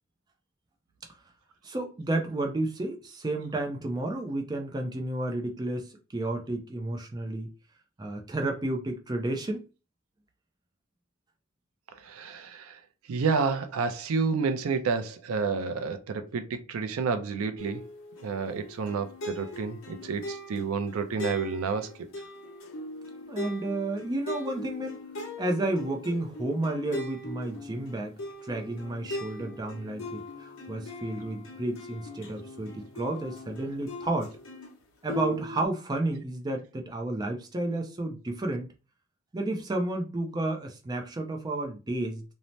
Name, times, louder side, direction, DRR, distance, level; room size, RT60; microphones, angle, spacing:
voice 1, 1.6-7.5 8.0-9.7 23.3-25.0 25.4-34.3 35.0-38.7 39.3-42.2, right 2 dB, 20° right, 0.4 m, -31 dB
voice 2, 12.0-12.8 13.1-17.8 18.2-21.9, right 5 dB, 75° right, 0.4 m, -30 dB
sound 1, 17.6-34.7 35.1-35.6, left 1 dB, 65° left, 0.8 m, -40 dB
2.7 x 2.0 x 3.1 m
head